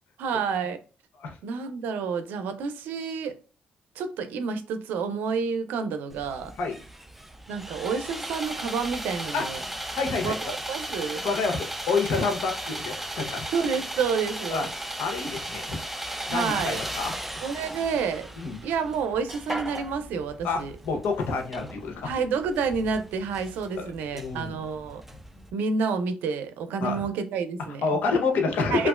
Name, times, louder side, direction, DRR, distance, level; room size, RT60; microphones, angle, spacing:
voice 1, 0.2-0.8 1.4-3.3 4.0-6.5 7.5-9.6 10.2-11.3 13.5-14.7 16.3-16.8 17.4-18.3 18.6-20.7 22.0-25.0 25.5-27.8 28.7-28.9, right 5 dB, 90° right, 0.4 m, -29 dB
Sawing, 6.1-25.5, right 1 dB, 5° right, 0.4 m, -37 dB
voice 2, 9.9-10.5 11.2-13.4 14.5-14.7 15.0-15.8 16.3-17.1 18.4-18.6 20.4-22.1 23.8-23.9 24.1-24.6 26.8-27.0 27.8-28.9, left 4 dB, 80° left, 0.8 m, -28 dB
3.0 x 2.4 x 2.3 m
cardioid pair, 85°, 3 cm